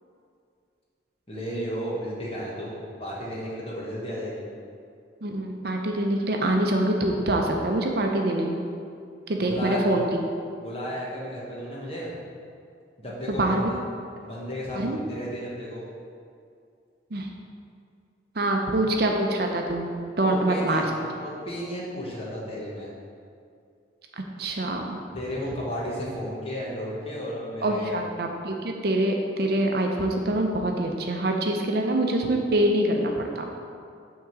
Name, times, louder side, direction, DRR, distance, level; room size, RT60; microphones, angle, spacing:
voice 1, 1.3-4.4 9.4-9.8 10.6-12.1 13.0-13.8 14.2-15.8 20.2-22.9 25.1-28.1, equal, 30° left, -5 dB, 1.3 m, -33 dB
voice 2, 5.2-8.6 9.3-10.2 13.3-13.7 14.7-15.0 17.1-17.3 18.3-19.9 20.2-20.8 24.4-25.0 27.6-33.5, right 1 dB, 55° right, 2 dB, 0.6 m, -25 dB
6.0 x 3.7 x 6.0 m, 2.3 s
head